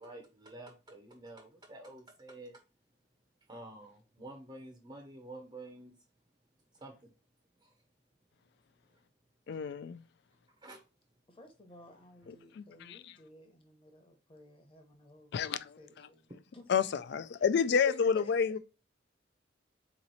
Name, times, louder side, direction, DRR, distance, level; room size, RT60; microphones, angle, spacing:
voice 1, 0.0-2.6 3.5-6.0 6.8-7.1 7.6-7.7 10.6-10.8, right 2 dB, 25° right, 0.6 m, -49 dB
voice 2, 9.5-10.0 12.3-13.0 15.3-15.8 16.7-18.6, left 6 dB, 60° left, 0.3 m, -30 dB
voice 3, 11.3-16.3 16.5-16.9 17.3-17.7 18.1-18.3, equal, 30° left, 0.9 m, -56 dB
4.0 x 3.0 x 4.0 m
head